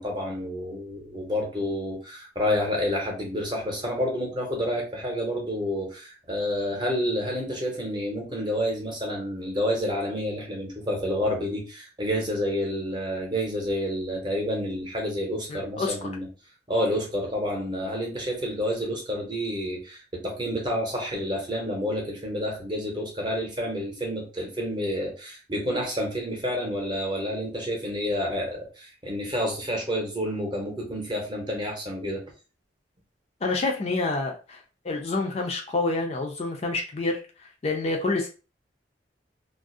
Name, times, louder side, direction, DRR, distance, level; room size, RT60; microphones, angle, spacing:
voice 1, 0.0-16.3 16.7-32.2, equal, 25° right, -1 dB, 0.7 m, -29 dB
voice 2, 15.5-16.1 33.4-38.3, left 3 dB, 35° left, 1 dB, 0.4 m, -28 dB
2.4 x 2.0 x 2.5 m, 0.33 s
head